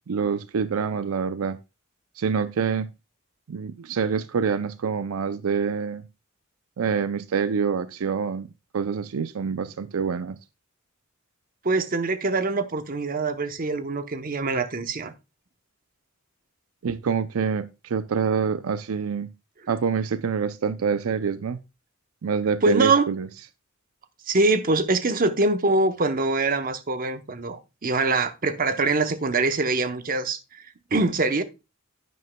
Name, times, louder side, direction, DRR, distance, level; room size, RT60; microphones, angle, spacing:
voice 1, 0.1-1.6 2.2-2.9 3.5-6.0 6.8-8.5 8.7-10.4 16.8-19.3 19.7-21.6 22.2-23.3, right 6 dB, 80° right, 0.5 m, -26 dB
voice 2, 11.6-15.1 22.6-23.1 24.3-30.4 30.9-31.4, right 3 dB, 40° right, 0.8 m, -23 dB
11.0 x 9.4 x 2.2 m
head